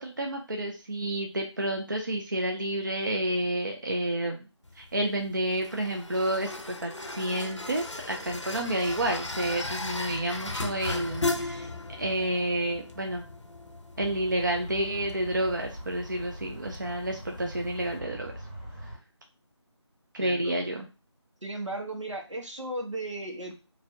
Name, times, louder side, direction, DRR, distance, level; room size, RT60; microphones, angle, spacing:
voice 1, 0.0-4.4 4.8-11.7 12.0-13.3 14.0-18.3 20.1-20.9, right 1 dB, 40° right, 3 dB, 0.6 m, -30 dB
sound 1, 4.6-18.0, left 2 dB, 80° left, 0.7 m, -37 dB
sound 2, 13.9-19.0, equal, 10° left, 0.9 m, -42 dB
voice 2, 20.2-20.5 21.4-23.5, right 2 dB, 85° right, 2 dB, 1.4 m, -35 dB
4.7 x 2.7 x 2.6 m, 0.31 s
figure-of-eight pair, 165°, 15 cm